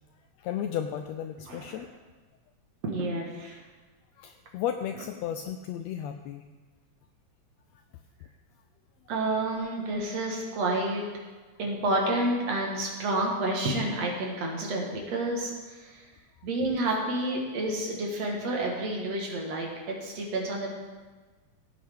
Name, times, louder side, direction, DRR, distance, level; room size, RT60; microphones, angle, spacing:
voice 1, 0.4-1.9 4.2-6.5, left 9 dB, 80° left, 7 dB, 1.5 m, -34 dB
voice 2, 2.8-3.6 9.1-11.0 11.6-16.1 16.4-20.7, right 2 dB, 60° right, -1 dB, 2.8 m, -29 dB
16.5 x 8.5 x 3.7 m, 1.3 s
omnidirectional pair, 3.4 m